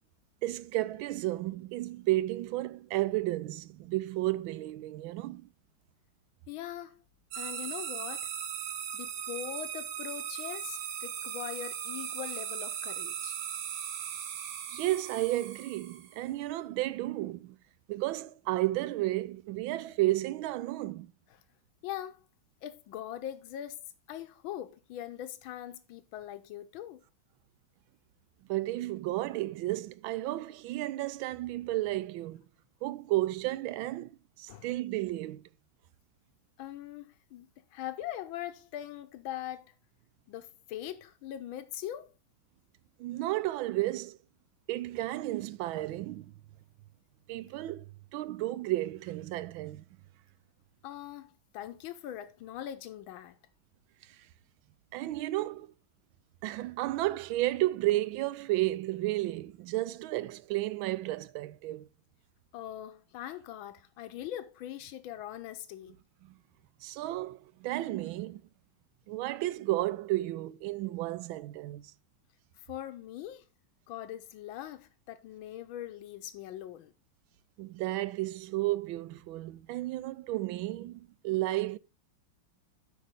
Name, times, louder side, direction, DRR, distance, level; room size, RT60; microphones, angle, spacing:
voice 1, 0.4-5.5 14.7-17.6 17.9-21.1 28.5-32.4 32.8-35.4 43.0-44.2 44.7-46.3 47.3-47.8 48.1-49.8 54.9-55.7 56.4-61.9 66.8-68.4 69.1-71.9 77.6-81.8, right 17 dB, 90° right, 1.4 m, -32 dB
voice 2, 6.5-7.0 7.4-8.3 8.9-13.4 21.8-22.2 22.6-23.8 24.1-27.0 34.5-34.7 36.6-39.7 40.3-42.1 50.8-53.4 62.5-66.0 72.6-73.4 73.9-76.9, left 11 dB, 90° left, 1.5 m, -41 dB
sound 1, 7.3-16.2, right 9 dB, 65° right, 1.4 m, -38 dB
8.6 x 5.5 x 5.1 m
omnidirectional pair, 2.1 m